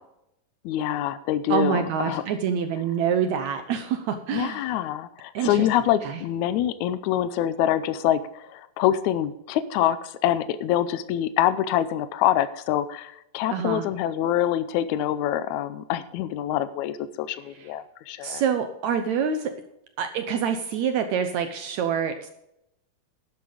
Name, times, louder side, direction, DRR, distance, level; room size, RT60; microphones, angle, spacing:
voice 1, 0.6-2.2 4.3-18.4, left 11 dB, 90° left, 13 dB, 1.7 m, -25 dB
voice 2, 1.5-4.7 5.3-5.7 6.0-6.2 13.5-13.8 17.6-17.7 18.2-19.5 20.0-22.3, right 7 dB, 75° right, 8 dB, 1.7 m, -26 dB
12.0 x 9.5 x 4.9 m, 0.82 s
omnidirectional pair, 4.1 m